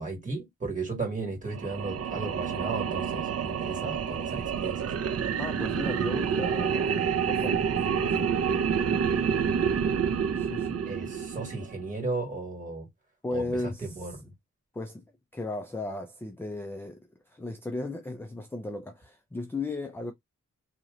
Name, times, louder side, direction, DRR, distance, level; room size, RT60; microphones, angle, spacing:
voice 1, 0.0-4.8 10.8-12.9 13.3-14.3, right 3 dB, 25° right, 2.1 m, -35 dB
sound 1, 1.5-11.8, right 7 dB, 50° right, 0.5 m, -28 dB
voice 2, 5.4-8.3 10.4-10.8 13.2-14.2 14.7-15.0 15.3-20.1, left 2 dB, 10° left, 0.4 m, -36 dB
2.9 x 2.8 x 3.8 m
wide cardioid pair, 160°, 31 cm